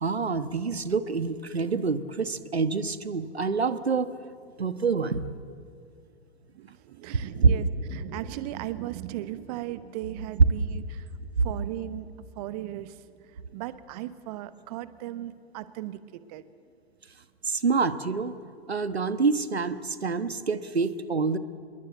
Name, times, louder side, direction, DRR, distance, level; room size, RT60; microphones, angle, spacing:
voice 1, 0.0-4.1 4.6-5.3 17.4-18.3 18.7-21.4, right 4 dB, 80° right, 12 dB, 1.3 m, -27 dB
voice 2, 6.5-13.0 13.3-16.4, right 14 dB, 40° right, 14 dB, 1.1 m, -37 dB
27.0 x 22.5 x 8.0 m, 2.3 s
figure-of-eight pair, 105°, 31 cm